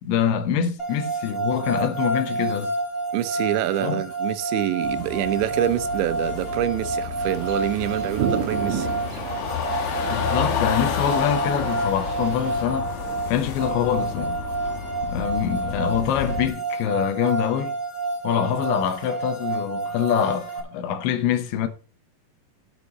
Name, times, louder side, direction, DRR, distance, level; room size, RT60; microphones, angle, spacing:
voice 1, 0.0-2.7 3.8-4.0 10.0-12.9 13.3-14.4 15.0-17.8 18.2-21.7, left 9 dB, 90° left, 3.5 m, -25 dB
sound 1, 0.8-20.6, right 3 dB, 25° left, 2.1 m, -29 dB
voice 2, 3.1-8.9, right 12 dB, 85° right, 3.2 m, -26 dB
sound 2, 4.8-16.5, left 7 dB, 70° left, 1.7 m, -31 dB
sound 3, 7.2-12.6, right 7 dB, 60° right, 2.0 m, -33 dB
9.9 x 8.4 x 4.1 m
omnidirectional pair, 5.2 m